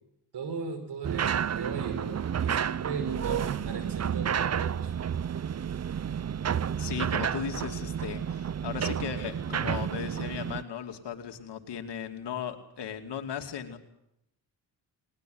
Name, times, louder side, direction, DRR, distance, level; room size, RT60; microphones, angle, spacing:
voice 1, 0.3-4.9, right 5 dB, 70° right, 9 dB, 5.1 m, -37 dB
sound 1, 1.0-10.6, right 8 dB, 40° right, 0.7 m, -31 dB
voice 2, 6.8-13.8, left 8 dB, 70° left, 6 dB, 2.7 m, -37 dB
20.5 x 19.5 x 7.8 m, 0.82 s
supercardioid pair, 60°, 42 cm